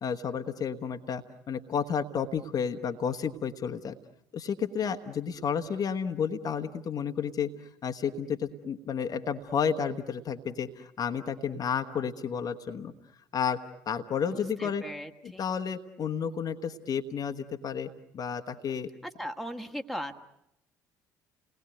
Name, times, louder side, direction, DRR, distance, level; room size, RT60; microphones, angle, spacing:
voice 1, 0.0-3.9 4.3-12.9 13.3-13.6 13.9-14.8 15.2-18.9, left 7 dB, 45° left, 6 dB, 1.3 m, -31 dB
voice 2, 14.3-15.5 19.2-20.2, equal, ahead, 4 dB, 1.6 m, -38 dB
30.0 x 20.0 x 9.1 m, 0.82 s
figure-of-eight pair, 50°, 9 cm